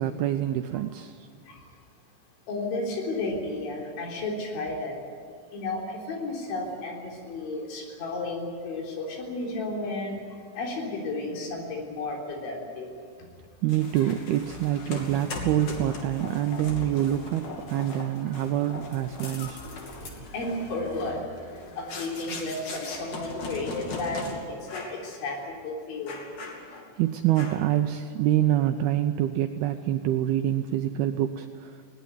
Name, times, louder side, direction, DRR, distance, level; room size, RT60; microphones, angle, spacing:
voice 1, 0.0-1.3 13.6-19.6 27.0-31.8, right 12 dB, 80° right, 7 dB, 2.2 m, -26 dB
voice 2, 2.5-5.0 5.5-10.2 10.6-12.9 19.3-26.3, left 2 dB, 85° left, 0 dB, 6.1 m, -33 dB
sound 1, 13.7-24.3 24.7-25.0 25.4-25.5 26.1-26.9 27.4-27.8, left 3 dB, 50° left, 3.8 m, -39 dB
20.0 x 18.5 x 9.5 m, 2.1 s
omnidirectional pair, 5.2 m